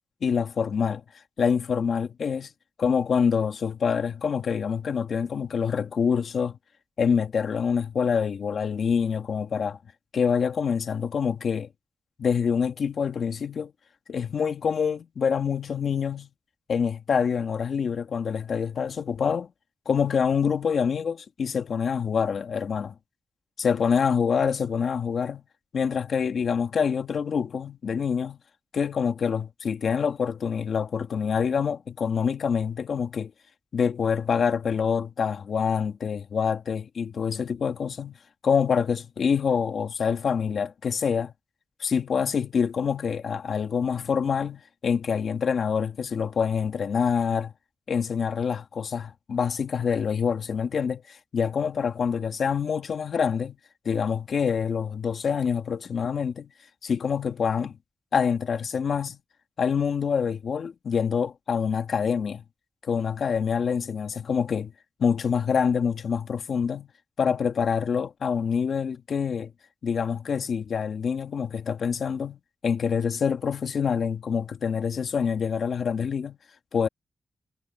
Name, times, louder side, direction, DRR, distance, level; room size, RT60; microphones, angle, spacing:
voice 1, 0.2-1.0 1.4-2.5 2.8-6.6 7.0-9.8 10.1-11.7 12.2-13.7 14.1-16.3 16.7-19.5 19.9-22.9 23.6-25.4 25.7-28.4 28.7-33.3 33.7-38.2 38.4-41.3 41.8-47.5 47.9-53.6 53.9-56.5 56.8-57.8 58.1-59.2 59.6-62.4 62.8-64.7 65.0-66.9 67.2-69.5 69.8-76.4 76.7-76.9, left 6 dB, 65° left, 1.9 m, -26 dB
wide cardioid pair, 125°, 0 cm